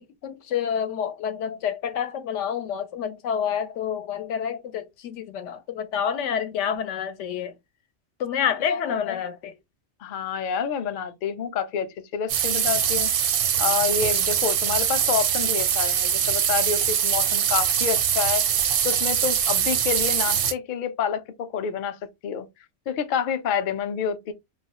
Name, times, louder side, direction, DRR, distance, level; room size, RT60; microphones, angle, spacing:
voice 1, 0.0-7.5 8.2-9.5, left 8 dB, 85° left, 0.9 m, -28 dB
voice 2, 8.7-9.1 10.0-11.9 12.1-13.1 13.6-18.4 18.8-22.0 22.2-22.5 22.9-24.3, left 7 dB, 60° left, 0.5 m, -28 dB
sound 1, 12.3-20.5, right 8 dB, 85° right, 0.9 m, -23 dB
3.0 x 2.4 x 2.7 m
omnidirectional pair, 1.2 m